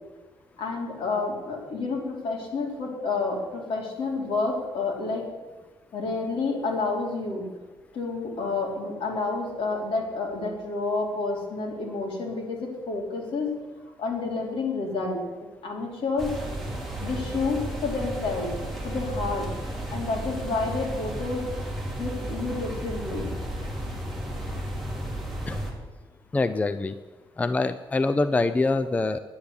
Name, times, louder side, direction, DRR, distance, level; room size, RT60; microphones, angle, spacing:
voice 1, 0.6-5.2 5.9-7.5 7.9-13.5 14.0-15.2 15.6-16.3 17.0-18.5 18.8-19.5 19.9-21.4 22.0-23.3, left 3 dB, 70° left, 0 dB, 3.2 m, -29 dB
sound 1, 16.2-25.7, right 1 dB, ahead, 2.4 m, -33 dB
voice 2, 26.3-27.0 27.4-29.2, left 3 dB, 15° left, 12 dB, 0.4 m, -24 dB
10.5 x 9.7 x 7.0 m, 1.3 s
cardioid pair, 150°, 9 cm